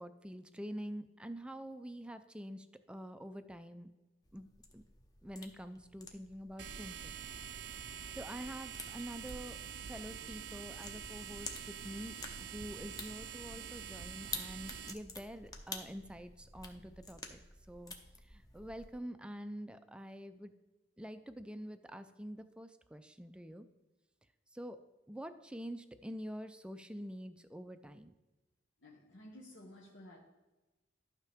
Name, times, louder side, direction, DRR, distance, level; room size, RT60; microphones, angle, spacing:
voice 1, 0.0-3.9 4.3-4.5 4.7-4.8 5.2-7.1 8.1-17.4 17.7-17.9 18.2-20.5 21.0-23.7 24.5-24.8 25.1-28.1, equal, 5° right, 10 dB, 0.4 m, -46 dB
sound 1, 4.2-18.9, left 3 dB, 20° left, 0.8 m, -51 dB
sound 2, 6.6-14.9, right 7 dB, 65° right, 0.5 m, -46 dB
voice 2, 28.8-30.2, left 1 dB, 80° left, -3 dB, 1.2 m, -54 dB
12.0 x 5.8 x 3.5 m, 1.1 s
head